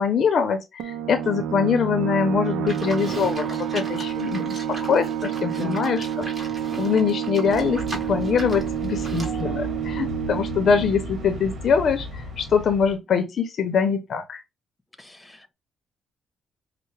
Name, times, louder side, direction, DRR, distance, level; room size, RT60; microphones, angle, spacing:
voice 1, 0.0-6.3 6.8-14.4, left 6 dB, 55° left, 0.6 m, -23 dB
sound 1, 0.8-12.1, right 9 dB, 85° right, 0.5 m, -29 dB
Livestock farm animals working animals, 2.7-9.4, right 2 dB, 25° right, 1.7 m, -39 dB
voice 2, 5.4-5.9 15.0-15.5, left 2 dB, 10° left, 1.0 m, -37 dB
sound 2, 7.5-13.0, left 1 dB, 60° right, 1.4 m, -35 dB
5.4 x 2.1 x 3.2 m
cardioid pair, 90°, 0 cm